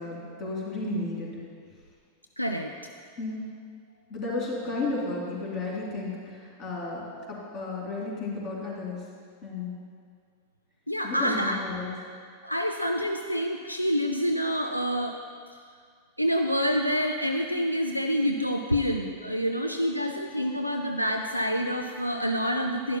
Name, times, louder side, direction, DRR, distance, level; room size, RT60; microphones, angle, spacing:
voice 1, 0.0-1.4 3.2-3.5 4.1-9.1 9.4-9.7 11.0-11.9, left 3 dB, 40° left, -4 dB, 2.6 m, -33 dB
voice 2, 2.4-2.7 10.9-11.6 12.4-15.2 16.2-23.0, equal, 90° left, 3 dB, 0.4 m, -27 dB
11.5 x 11.0 x 2.2 m, 2.1 s
figure-of-eight pair, 90°, 0 cm